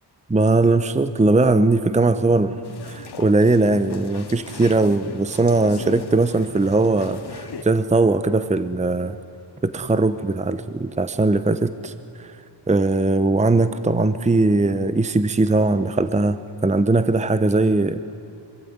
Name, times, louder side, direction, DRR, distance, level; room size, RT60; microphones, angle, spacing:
voice 1, 0.3-9.2 9.6-11.9 12.2-12.3 12.7-18.0, right 2 dB, 15° right, 12 dB, 0.8 m, -20 dB
sound 1, 2.6-7.6, left 5 dB, 65° left, 2.2 m, -39 dB
25.5 x 24.0 x 9.5 m, 2.7 s
wide cardioid pair, 140°, 43 cm